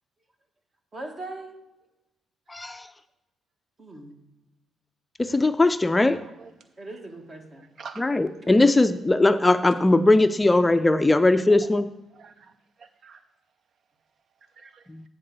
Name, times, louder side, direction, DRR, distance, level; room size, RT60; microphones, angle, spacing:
voice 1, 0.9-1.6 3.8-4.2 6.8-7.7 8.4-8.6, right 2 dB, 40° right, 4 dB, 1.5 m, -40 dB
voice 2, 2.5-2.9 5.2-6.2 8.0-11.9 14.9-15.0, left 2 dB, 15° left, 10 dB, 0.4 m, -20 dB
voice 3, 6.1-6.5 7.6-8.0 11.1-11.2 12.1-12.5 12.8-13.2 14.6-14.8, right 5 dB, 60° right, 12 dB, 0.3 m, -45 dB
8.9 x 3.9 x 6.7 m, 0.98 s
cardioid pair, 85°, 0 cm